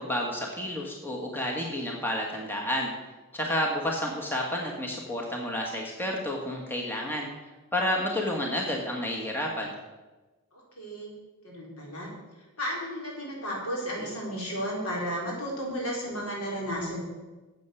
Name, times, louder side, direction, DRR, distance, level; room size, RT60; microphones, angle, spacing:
voice 1, 0.0-2.9 3.3-7.3 7.7-9.7, left 1 dB, 10° left, -1 dB, 1.4 m, -30 dB
voice 2, 10.5-11.1 11.4-12.1 12.6-17.0, equal, 85° left, -3 dB, 4.2 m, -33 dB
9.2 x 8.0 x 6.9 m, 1.2 s
head